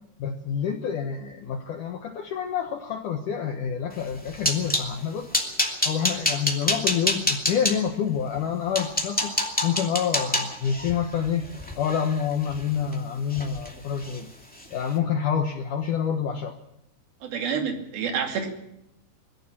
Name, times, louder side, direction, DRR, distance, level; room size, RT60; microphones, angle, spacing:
voice 1, 0.2-5.3 5.9-9.3 9.6-11.5 11.8-14.3 14.7-16.6, left 7 dB, 75° left, 4 dB, 1.9 m, -27 dB
sound 1, 4.0-4.9 5.3-7.8 8.4-8.5 8.7-12.9 13.3-13.7 14.0-14.2 14.6-14.8, left 1 dB, 10° left, 0.3 m, -27 dB
voice 2, 17.2-18.5, right 6 dB, 60° right, 3 dB, 4.0 m, -28 dB
21.5 x 14.0 x 8.8 m, 0.84 s
omnidirectional pair, 5.3 m